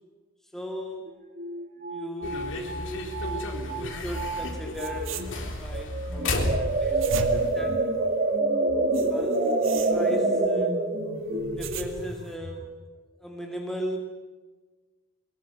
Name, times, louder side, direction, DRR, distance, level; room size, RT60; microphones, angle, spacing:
voice 1, 0.5-1.2 1.9-7.8 9.1-9.4 9.9-10.8 11.6-12.7 13.2-14.0, equal, ahead, 1 dB, 2.2 m, -38 dB
sound 1, 1.1-1.2 1.4-3.9 4.1-4.4 4.8-5.3 5.7-12.6, right 2 dB, 45° right, 3.3 m, -27 dB
sound 2, 2.2-7.5, left 1 dB, 65° left, 3.9 m, -33 dB
sound 3, 4.4-4.5 4.7-5.8 6.7-8.4 8.9-10.5 11.3-12.3, right 3 dB, 70° right, 2.3 m, -38 dB
22.5 x 21.0 x 7.8 m, 1.3 s
head